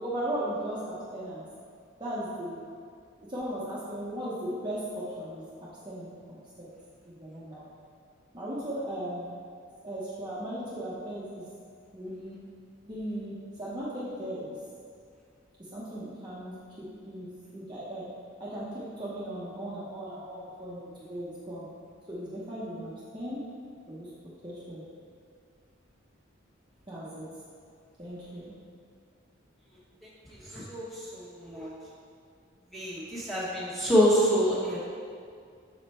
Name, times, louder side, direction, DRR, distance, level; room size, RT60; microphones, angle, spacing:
voice 1, 0.0-1.4 2.0-2.6 3.2-5.4 5.8-6.7 7.1-7.7 8.3-9.3 9.8-11.5 11.9-12.4 12.9-14.6 15.7-18.0 18.4-21.7 22.1-23.4 23.9-24.1 24.4-24.8 26.9-27.3 28.0-28.5 31.5-31.6, right 1 dB, 25° right, -9 dB, 0.9 m, -37 dB
voice 2, 30.3-31.7 32.7-34.8, equal, ahead, -8 dB, 1.3 m, -26 dB
6.5 x 4.9 x 4.3 m, 2.2 s
head